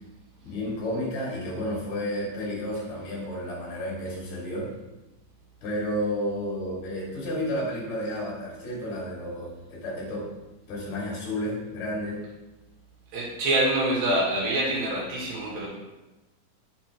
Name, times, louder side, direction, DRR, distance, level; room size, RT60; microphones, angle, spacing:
voice 1, 0.4-4.7 5.6-10.3 10.7-12.2, left 1 dB, 55° left, -5 dB, 3.4 m, -31 dB
voice 2, 13.1-15.7, right 1 dB, 75° right, -5 dB, 3.6 m, -25 dB
8.4 x 6.9 x 2.9 m, 1.0 s
omnidirectional pair, 4.2 m